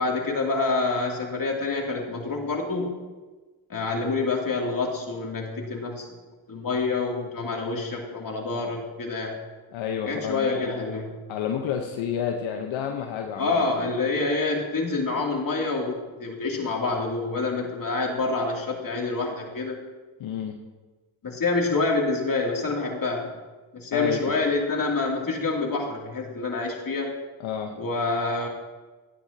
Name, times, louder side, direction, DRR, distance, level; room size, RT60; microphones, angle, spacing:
voice 1, 0.0-3.0 3.7-6.1 6.5-9.4 10.0-11.1 13.4-19.8 21.2-23.3 23.7-27.1 27.8-28.5, left 3 dB, 45° left, 0 dB, 2.8 m, -27 dB
voice 2, 9.7-10.7 11.3-13.6 20.2-20.6 23.9-24.4 27.4-27.7, left 8 dB, 75° left, 3 dB, 1.0 m, -30 dB
14.0 x 9.9 x 2.8 m, 1.3 s
supercardioid pair, 60°, 48 cm